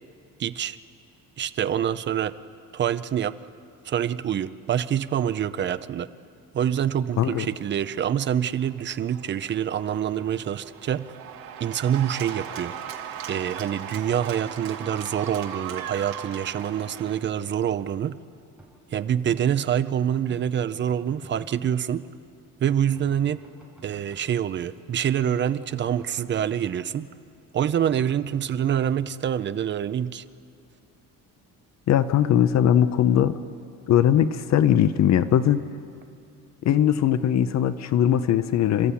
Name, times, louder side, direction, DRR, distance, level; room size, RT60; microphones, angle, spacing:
voice 1, 0.4-0.8 1.4-2.3 2.7-3.3 3.8-6.1 6.5-11.1 11.6-12.7 13.3-18.2 18.9-22.0 22.6-23.4 23.8-27.1 27.5-30.2, right 9 dB, 35° right, 13 dB, 0.5 m, -26 dB
Cheering / Applause, 7.5-17.2, right 9 dB, 85° right, 1.9 m, -39 dB
sound 1, 18.6-19.4 20.3-21.8 22.8-24.2 25.7-26.8, right 2 dB, 5° right, 4.6 m, -49 dB
voice 2, 31.9-33.3 33.9-35.6 36.6-38.9, left 10 dB, 50° left, 13 dB, 0.7 m, -20 dB
28.0 x 13.0 x 8.4 m, 2.5 s
cardioid pair, 165°, 34 cm